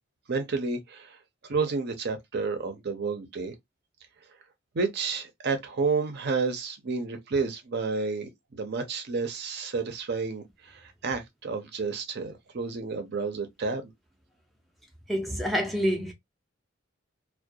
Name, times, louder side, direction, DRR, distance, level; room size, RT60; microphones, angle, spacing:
voice 1, 0.3-1.2 1.4-3.5 4.7-13.9, right 4 dB, 55° right, 0.6 m, -30 dB
voice 2, 15.1-16.1, equal, ahead, 0.4 m, -27 dB
2.3 x 2.1 x 2.5 m
head